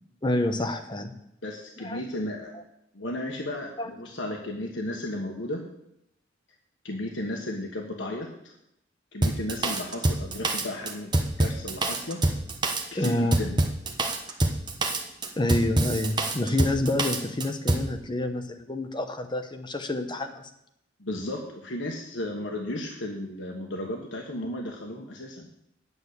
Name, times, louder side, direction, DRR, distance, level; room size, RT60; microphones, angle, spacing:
voice 1, 0.2-1.1 1.8-2.0 3.8-3.9 12.9-13.4 15.4-20.5, left 1 dB, 25° left, 6 dB, 1.0 m, -28 dB
voice 2, 1.4-2.5 2.9-5.6 6.8-8.5 9.1-11.1 11.4-12.2 12.9-13.6 21.0-25.5, left 1 dB, 85° left, 1 dB, 1.4 m, -34 dB
Drum kit, 9.2-17.9, right 1 dB, 25° right, 1.1 m, -26 dB
9.5 x 6.5 x 8.2 m, 0.79 s
head